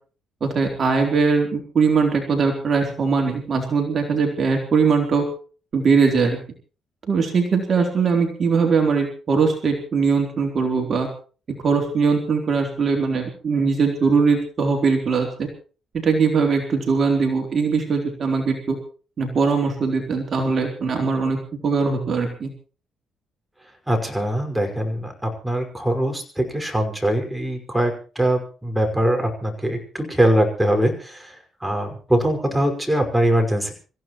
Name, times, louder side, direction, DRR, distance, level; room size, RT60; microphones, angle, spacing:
voice 1, 0.4-5.3 5.7-6.4 7.1-11.1 11.6-15.5 15.9-18.8 19.2-21.4 21.6-22.5, right 5 dB, 45° right, 2 dB, 3.8 m, -21 dB
voice 2, 23.9-31.3 31.6-33.7, right 1 dB, 5° right, 4 dB, 5.5 m, -22 dB
26.5 x 15.5 x 3.1 m, 0.38 s
cardioid pair, 90°, 0 cm